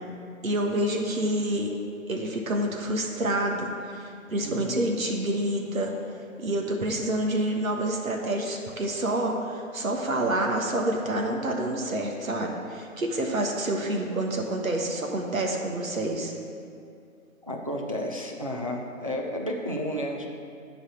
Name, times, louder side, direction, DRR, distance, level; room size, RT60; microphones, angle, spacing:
voice 1, 0.4-1.7 2.1-5.9 6.4-16.3, right 1 dB, 75° right, 1 dB, 1.4 m, -28 dB
voice 2, 4.4-4.8 17.4-20.3, equal, 25° right, 0 dB, 0.4 m, -32 dB
11.0 x 4.2 x 6.3 m, 2.4 s
figure-of-eight pair, 145°, 42 cm